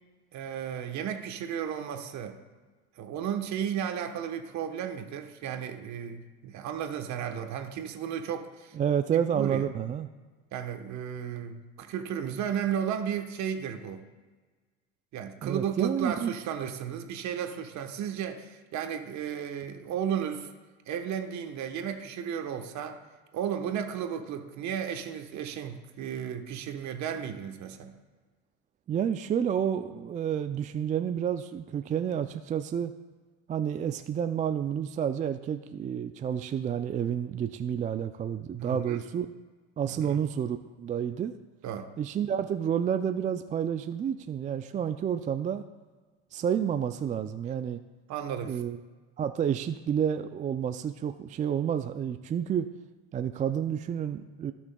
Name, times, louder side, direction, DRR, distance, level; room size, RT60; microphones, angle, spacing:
voice 1, 0.3-2.4 3.0-8.8 9.1-9.7 10.5-14.0 15.1-20.5 20.9-23.0 23.3-27.9 38.6-39.0 39.9-40.2 41.6-41.9 48.1-48.6, right 8 dB, 55° right, 6 dB, 1.2 m, -34 dB
voice 2, 8.7-10.1 15.4-16.3 28.9-32.9 33.5-39.3 39.8-41.3 42.0-45.6 46.3-47.8 48.4-48.8 49.2-52.7 53.1-54.5, right 8 dB, 25° right, 9 dB, 0.3 m, -30 dB
16.5 x 6.3 x 2.3 m, 1.3 s
supercardioid pair, 95°, 35 cm